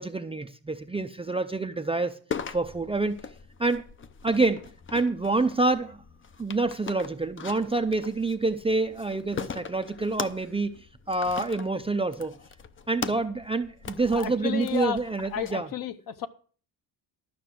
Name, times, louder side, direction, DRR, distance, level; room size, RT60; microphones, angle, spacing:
voice 1, 0.0-2.2 2.5-3.2 3.6-3.8 4.2-4.6 4.9-6.0 6.4-10.7 11.1-12.3 12.9-15.7, right 3 dB, 15° right, 0.5 m, -27 dB
sound 1, 2.3-15.5, left 6 dB, 30° left, 0.6 m, -40 dB
voice 2, 14.1-16.3, left 8 dB, 50° left, 1.0 m, -32 dB
12.0 x 6.0 x 7.7 m
cardioid pair, 140°, 43 cm